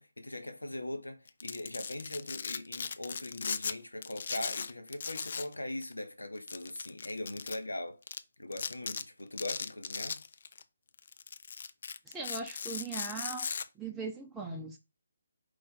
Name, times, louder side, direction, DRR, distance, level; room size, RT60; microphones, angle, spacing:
voice 1, 0.0-8.0 8.4-10.2, left 1 dB, 85° left, 0.9 m, -40 dB
Domestic sounds home sounds, 1.3-3.7 4.0-5.5 5.8-5.9 6.5-7.6 8.1-8.2 8.5-9.0 9.4-10.6 11.0-13.6, left 6 dB, 50° left, 0.3 m, -38 dB
voice 2, 12.1-13.5 13.8-14.8, right 4 dB, 10° right, 0.5 m, -39 dB
4.8 x 2.5 x 3.9 m
figure-of-eight pair, 145°, 0 cm